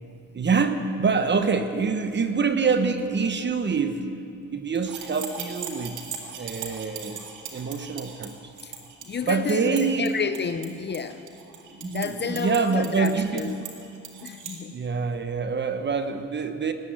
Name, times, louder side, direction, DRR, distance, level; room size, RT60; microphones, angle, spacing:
voice 1, 0.3-4.0 4.5-6.1 6.3-7.2 7.5-8.3 9.2-10.1 11.7-13.6 14.7-16.7, right 5 dB, 35° right, 8 dB, 1.1 m, -25 dB
sound 1, 4.8-14.6, right 7 dB, 80° right, 2.2 m, -39 dB
voice 2, 9.0-11.2 11.8-13.6 14.2-14.8, left 6 dB, 35° left, 10 dB, 0.7 m, -30 dB
18.5 x 8.3 x 9.6 m, 2.6 s
cardioid pair, 90°, 30 cm